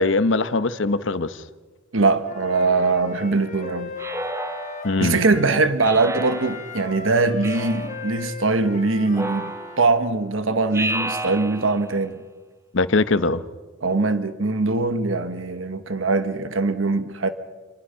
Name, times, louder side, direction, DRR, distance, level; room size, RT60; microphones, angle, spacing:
voice 1, 0.0-1.4 4.8-5.2 12.7-13.4, left 3 dB, 65° left, 0.9 m, -21 dB
voice 2, 1.9-3.9 5.0-12.2 13.8-17.3, right 3 dB, 75° right, 1.2 m, -22 dB
Wind instrument woodwind instrument, 2.2-5.6 6.1-9.9, left 3 dB, 35° left, 1.4 m, -37 dB
Speech synthesizer, 4.0-5.1 5.8-6.8 7.4-8.1 9.1-10.0 10.7-11.9, right 2 dB, 15° right, 0.8 m, -31 dB
27.5 x 20.0 x 5.7 m
head